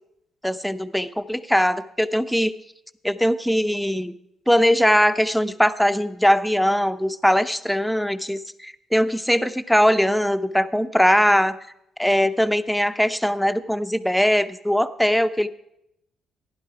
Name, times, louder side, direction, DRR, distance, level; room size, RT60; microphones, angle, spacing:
voice 1, 0.4-2.5 3.0-4.1 4.5-11.6 12.0-15.5, equal, ahead, 11 dB, 0.7 m, -21 dB
15.5 x 11.0 x 4.7 m, 0.79 s
cardioid pair, 90°, 0 cm